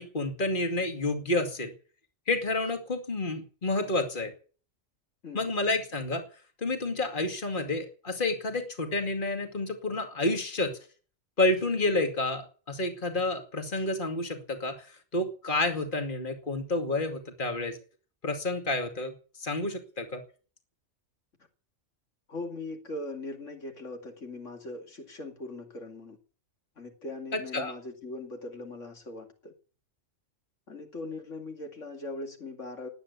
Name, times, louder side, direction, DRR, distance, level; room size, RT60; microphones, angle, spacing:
voice 1, 0.0-1.7 2.3-4.3 5.3-6.2 6.6-10.7 11.4-12.4 12.7-14.9 15.1-17.8 18.2-19.1 19.4-20.2 27.3-27.7, left 2 dB, 40° left, 5 dB, 2.5 m, -29 dB
voice 2, 22.3-26.2 26.8-29.5 30.7-32.9, left 2 dB, 80° left, 4 dB, 2.8 m, -40 dB
19.5 x 8.9 x 8.2 m, 0.41 s
omnidirectional pair, 1.3 m